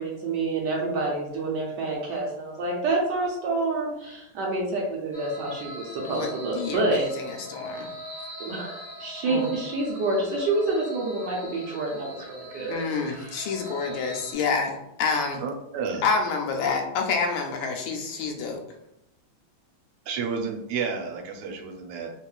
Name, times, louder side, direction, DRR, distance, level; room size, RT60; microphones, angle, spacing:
voice 1, 0.0-7.1 8.4-13.5, right 2 dB, 70° right, -2 dB, 1.0 m, -28 dB
sound 1, 5.1-14.3, equal, 10° right, 0.5 m, -42 dB
voice 2, 6.5-7.9 9.3-9.5 12.7-15.4 16.0-18.6, left 5 dB, 80° left, 3 dB, 1.3 m, -28 dB
voice 3, 15.4-16.0 20.1-22.1, right 5 dB, 90° right, 3 dB, 1.5 m, -31 dB
3.5 x 3.0 x 2.3 m, 0.85 s
omnidirectional pair, 2.3 m